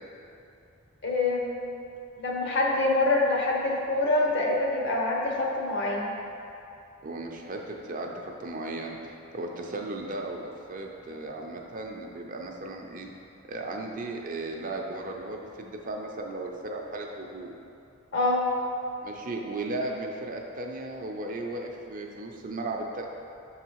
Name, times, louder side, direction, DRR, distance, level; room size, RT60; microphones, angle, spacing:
voice 1, 1.0-1.7 2.2-6.1 18.1-18.5, left 2 dB, 55° left, -1 dB, 1.0 m, -25 dB
voice 2, 7.0-8.1 8.4-9.0 9.3-13.1 13.5-17.6 19.0-23.1, right 2 dB, 40° right, 1 dB, 0.6 m, -35 dB
7.0 x 4.0 x 4.6 m, 2.7 s
head